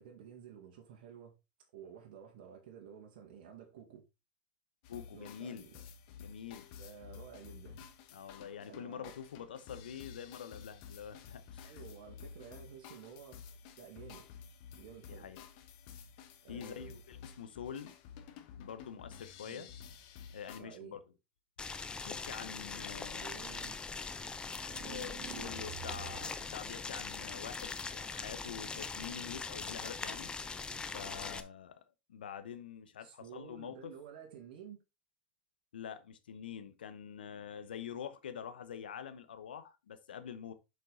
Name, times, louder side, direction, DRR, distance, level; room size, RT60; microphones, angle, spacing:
voice 1, 0.0-1.3 1.7-4.1 5.1-5.8 6.8-7.8 8.7-9.1 11.6-13.4 13.8-14.3 14.8-15.3 16.4-17.0 19.4-19.7 20.6-21.0 23.0-23.8 25.4-25.5 33.0-34.8, right 8 dB, 65° right, 1.9 m, -52 dB
sound 1, 4.8-20.6, left 7 dB, 60° left, 1.3 m, -52 dB
voice 2, 4.9-5.7 6.2-6.7 8.1-11.8 15.1-15.4 16.5-17.9 18.6-19.7 20.3-21.1 22.0-23.4 24.8-30.3 30.9-31.8 32.1-33.9 35.7-40.5, left 8 dB, 85° left, 1.0 m, -46 dB
Boiling, 21.6-31.4, left 4 dB, 15° left, 0.8 m, -41 dB
sound 2, 24.7-26.5, right 18 dB, 50° right, 0.5 m, -48 dB
6.7 x 5.2 x 3.9 m
hypercardioid pair, 95°, 5 cm